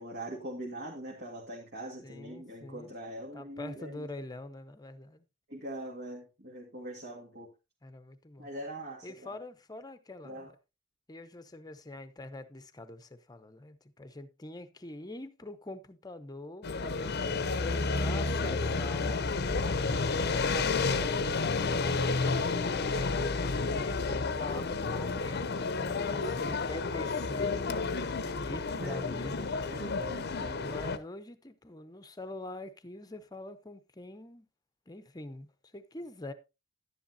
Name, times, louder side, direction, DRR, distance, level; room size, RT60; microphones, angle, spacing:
voice 1, 0.0-4.1 5.5-7.5 8.4-9.4 10.2-10.5 28.8-29.2 29.6-30.7, right 1 dB, 55° right, 1.8 m, -42 dB
voice 2, 2.0-2.9 3.3-5.2 7.8-8.5 9.0-10.5 11.1-21.4 22.2-29.5 30.6-34.5 34.9-36.3, left 2 dB, 20° left, 0.8 m, -44 dB
sound 1, 16.6-31.0, left 4 dB, 55° left, 0.7 m, -31 dB
11.0 x 10.0 x 2.8 m
head